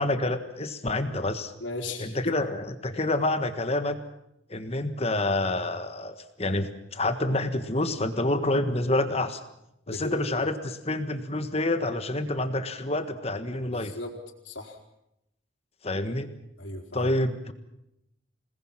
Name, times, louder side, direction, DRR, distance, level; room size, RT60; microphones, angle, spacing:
voice 1, 0.0-1.5 2.0-4.0 4.5-9.4 9.9-13.9 15.8-16.3 16.9-17.5, left 2 dB, 35° left, 9 dB, 1.5 m, -28 dB
voice 2, 1.6-2.4 9.9-10.4 13.7-14.1 14.4-14.8 16.6-17.1, left 2 dB, 90° left, 1 dB, 4.1 m, -36 dB
27.5 x 20.0 x 7.4 m, 0.82 s
head